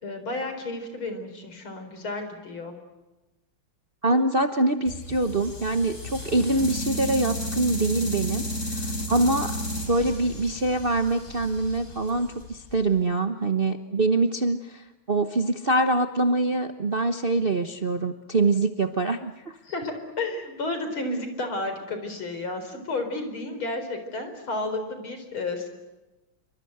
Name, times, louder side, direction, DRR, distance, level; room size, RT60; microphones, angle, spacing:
voice 1, 0.0-2.7 19.6-25.7, left 2 dB, 70° left, 7 dB, 5.1 m, -32 dB
voice 2, 4.0-9.6 9.9-19.3, right 2 dB, 35° right, 7 dB, 0.9 m, -24 dB
sound 1, 4.9-13.0, left 1 dB, 35° left, 5.2 m, -33 dB
27.0 x 24.5 x 8.0 m, 1.1 s
omnidirectional pair, 2.4 m